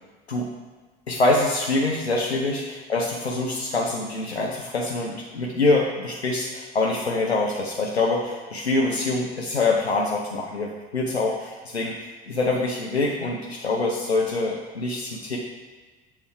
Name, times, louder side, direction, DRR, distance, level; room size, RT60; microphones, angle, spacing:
voice 1, 1.1-15.4, left 2 dB, 90° left, -2 dB, 0.6 m, -25 dB
7.3 x 3.0 x 4.4 m, 1.3 s
figure-of-eight pair, 65°, 31 cm